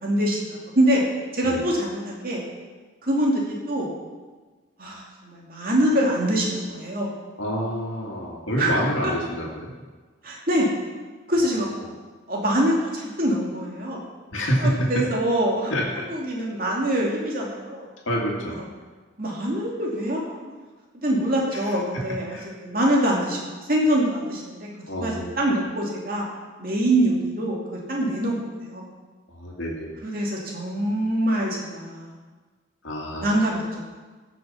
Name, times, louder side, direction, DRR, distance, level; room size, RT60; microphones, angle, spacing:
voice 1, 0.0-1.0 1.3-2.5 3.0-3.9 4.8-7.1 8.6-8.7 10.2-10.7 11.3-11.7 12.3-14.0 14.6-15.7 16.1-17.9 19.2-20.5 21.0-23.4 23.7-24.7 24.9-26.3 26.6-28.4 28.6-28.9 30.0-32.1 33.2-33.8, right 1 dB, 45° right, -2 dB, 2.5 m, -24 dB
voice 2, 7.4-9.7 11.5-11.9 14.3-15.1 15.7-16.1 18.1-18.6 21.5-22.5 24.9-25.3 29.3-29.9 32.8-33.4, equal, 85° left, -1 dB, 2.3 m, -28 dB
15.0 x 6.2 x 5.7 m, 1.4 s
head